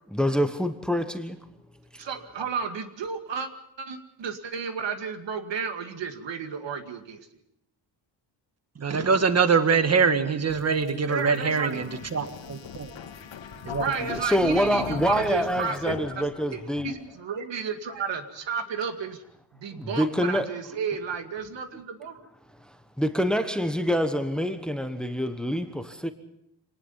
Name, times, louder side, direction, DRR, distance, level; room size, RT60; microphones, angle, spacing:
voice 1, 0.1-1.4 1.9-2.0 14.0-16.9 19.7-20.5 23.0-26.1, equal, ahead, 1.2 m, -26 dB
voice 2, 2.0-3.5 3.8-7.3 11.1-11.8 13.8-19.2 19.5-22.3, right 6 dB, 75° right, 2.2 m, -32 dB
voice 3, 8.8-12.9 13.6-13.8, right 5 dB, 35° right, 1.6 m, -23 dB
sound 1, 10.5-17.2, left 8 dB, 80° left, 2.1 m, -39 dB
25.0 x 19.0 x 5.6 m
wide cardioid pair, 130°, 44 cm